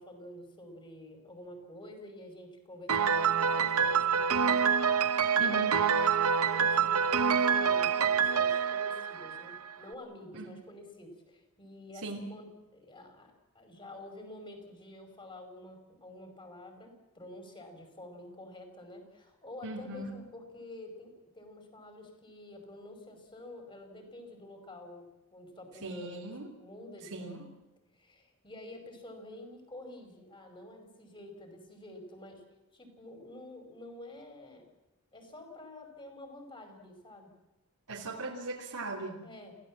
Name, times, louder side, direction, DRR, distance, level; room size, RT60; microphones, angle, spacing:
voice 1, 0.0-4.6 5.3-26.2 26.6-27.4 27.9-32.4 32.7-34.7 35.1-37.3 39.2-39.5, left 1 dB, 20° left, 5 dB, 5.2 m, -49 dB
Piano, 2.9-9.7, right 6 dB, 75° right, 1.0 m, -26 dB
voice 2, 19.6-20.1 25.8-26.5 27.1-27.4 37.9-39.2, right 2 dB, 90° right, -3 dB, 3.3 m, -38 dB
29.0 x 16.5 x 7.4 m, 1.1 s
head